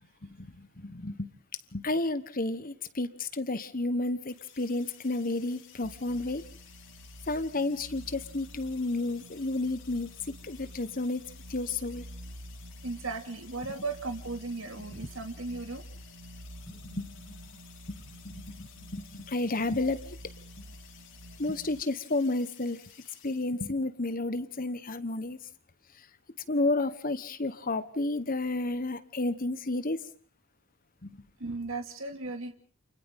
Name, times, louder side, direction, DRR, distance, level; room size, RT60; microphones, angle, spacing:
voice 1, 0.2-1.3 1.7-6.4 7.3-10.1 10.4-11.2 11.5-12.0 16.7-17.4 17.9-20.2 21.4-22.8 23.2-25.4 26.5-30.0 31.0-31.2, left 2 dB, 40° left, 12 dB, 1.3 m, -31 dB
sound 1, 4.3-23.5, left 9 dB, 60° left, 3.7 m, -55 dB
sound 2, 5.8-21.8, equal, 90° right, 1.5 m, -49 dB
voice 2, 12.8-15.8 31.4-32.5, right 3 dB, 65° right, 6 dB, 2.4 m, -36 dB
30.0 x 28.0 x 3.7 m, 0.44 s
head